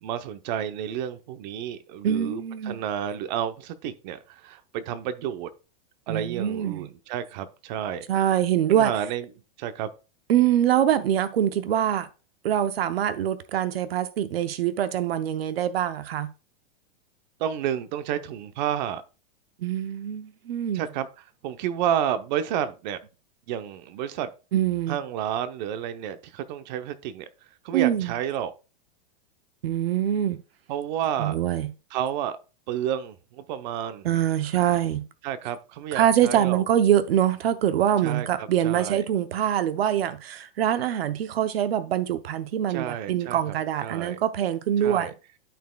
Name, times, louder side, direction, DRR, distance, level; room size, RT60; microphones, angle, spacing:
voice 1, 0.0-5.5 6.1-8.1 8.7-9.3 9.6-9.9 17.4-19.0 20.7-21.1 21.4-23.0 23.5-24.3 24.9-27.3 27.6-28.5 30.7-31.4 31.9-32.4 32.7-34.0 35.2-36.6 38.0-39.1 42.7-43.4 43.8-44.2 44.8-45.1, right 10 dB, 50° right, 0.8 m, -30 dB
voice 2, 2.0-2.8 6.1-6.9 8.1-8.9 10.3-12.1 12.4-16.3 19.6-20.9 24.5-25.0 27.7-28.1 29.6-30.4 31.2-31.7 34.0-35.1 35.9-45.1, right 10 dB, 90° right, 0.8 m, -24 dB
12.5 x 4.4 x 2.3 m
supercardioid pair, 150°, 29 cm